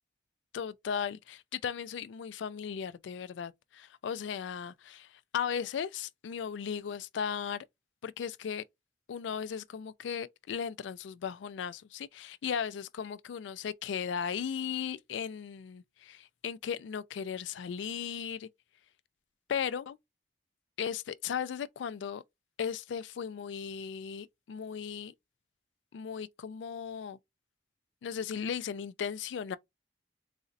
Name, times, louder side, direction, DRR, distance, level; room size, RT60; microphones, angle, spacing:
voice 1, 0.5-7.6 8.0-8.6 9.1-18.5 19.5-20.0 20.8-22.2 22.6-25.1 25.9-27.2 28.0-29.6, left 7 dB, 85° left, 0.3 m, -36 dB
4.0 x 2.6 x 2.4 m
head